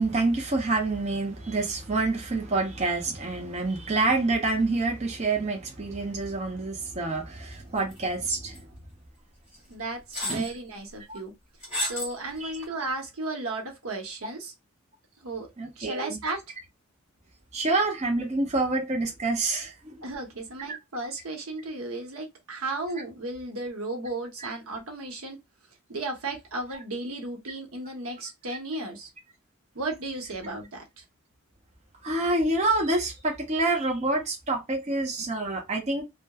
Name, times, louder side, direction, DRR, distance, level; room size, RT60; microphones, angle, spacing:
voice 1, 0.0-8.6 10.3-10.5 11.1-11.2 12.4-12.6 15.6-16.2 17.5-20.0 24.4-24.5 32.0-36.0, right 2 dB, 30° right, 0.5 m, -27 dB
sound 1, 7.9-8.3 8.5-8.6 9.5-9.6 10.1-10.5 11.6-12.2 12.6-12.7, left 1 dB, 5° right, 1.6 m, -31 dB
voice 2, 9.7-11.3 11.8-14.5 15.2-15.5 15.8-16.4 20.0-25.4 25.9-29.1 29.7-30.8, right 2 dB, 90° right, 0.8 m, -34 dB
2.9 x 2.1 x 2.2 m
head